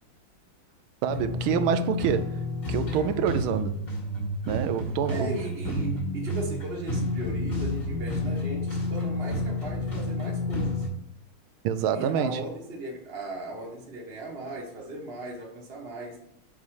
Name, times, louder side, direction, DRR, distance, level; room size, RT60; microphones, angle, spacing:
sound 1, 1.0-10.9, left 2 dB, 45° left, 2.5 m, -30 dB
voice 1, 1.0-2.3 2.7-3.7 4.5-5.4 11.6-12.4, right 8 dB, 80° right, 1.4 m, -26 dB
voice 2, 5.1-10.9 11.9-16.2, right 1 dB, 35° right, 1.2 m, -37 dB
5.6 x 4.8 x 4.7 m
omnidirectional pair, 2.3 m